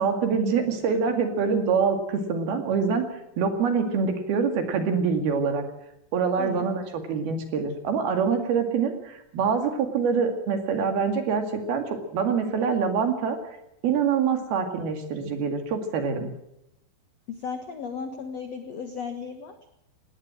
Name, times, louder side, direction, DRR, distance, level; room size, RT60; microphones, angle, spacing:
voice 1, 0.0-3.0 3.4-5.6 6.1-13.4 13.8-16.3, right 5 dB, 60° right, 6 dB, 3.8 m, -25 dB
voice 2, 17.3-19.5, left 5 dB, 70° left, 7 dB, 1.5 m, -35 dB
19.0 x 18.0 x 7.6 m, 0.82 s
omnidirectional pair, 5.5 m